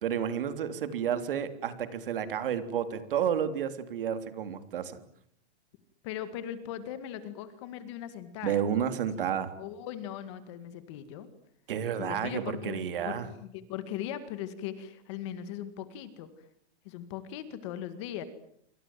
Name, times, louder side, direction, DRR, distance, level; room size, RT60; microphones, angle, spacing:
voice 1, 0.0-5.0 8.4-9.5 11.7-13.3, right 8 dB, 55° right, 10 dB, 3.5 m, -31 dB
voice 2, 6.0-8.6 9.2-11.3 12.0-16.3 16.8-18.2, left 10 dB, 25° left, 12 dB, 2.0 m, -39 dB
27.5 x 25.5 x 7.6 m, 0.70 s
hypercardioid pair, 175°, 33 cm